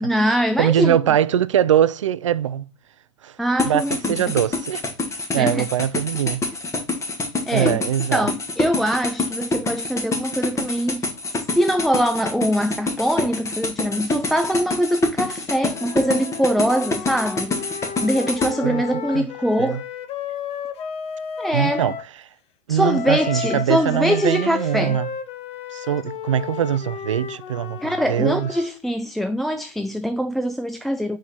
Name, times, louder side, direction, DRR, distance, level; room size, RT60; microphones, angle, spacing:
voice 1, 0.0-1.0 3.4-4.2 5.4-5.6 7.5-7.8 8.1-17.5 18.0-19.8 21.4-21.9 22.7-25.0 27.8-31.2, equal, ahead, 0.4 m, -23 dB
voice 2, 0.6-2.7 3.2-3.3 3.6-4.8 5.3-6.4 7.5-8.3 18.6-18.8 19.1-19.3 19.6-19.8 21.5-21.9 22.7-25.1 25.7-28.5, right 10 dB, 80° right, 0.4 m, -22 dB
sound 1, 3.6-18.5, left 3 dB, 20° left, 1.5 m, -26 dB
Wind instrument woodwind instrument, 15.7-22.1 22.8-28.8, left 7 dB, 40° left, 0.9 m, -33 dB
5.0 x 4.7 x 4.0 m
hypercardioid pair, 95°, 16 cm